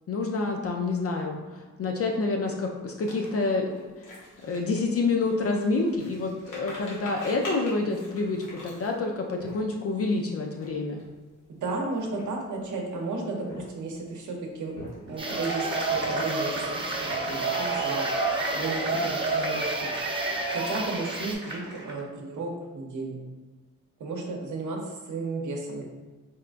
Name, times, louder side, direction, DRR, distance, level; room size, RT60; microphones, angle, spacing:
voice 1, 0.1-4.1 4.4-11.0, left 3 dB, 50° left, 1 dB, 0.5 m, -28 dB
sound 1, 3.1-10.0 10.5-10.7 10.9-11.2 11.8-12.6 13.3-14.0 14.5-15.3 15.8-16.4 16.7-17.5, left 1 dB, 80° left, 1.1 m, -43 dB
voice 2, 11.5-14.7 15.0-19.9 20.5-23.2 24.0-25.8, right 3 dB, 70° right, 0 dB, 0.8 m, -34 dB
Cheering / Applause / Crowd, 15.1-21.9, right 3 dB, 35° right, 0.9 m, -29 dB
sound 2, 15.2-21.3, right 2 dB, 15° right, 0.5 m, -38 dB
4.2 x 2.2 x 2.5 m, 1.3 s
cardioid pair, 65°, 31 cm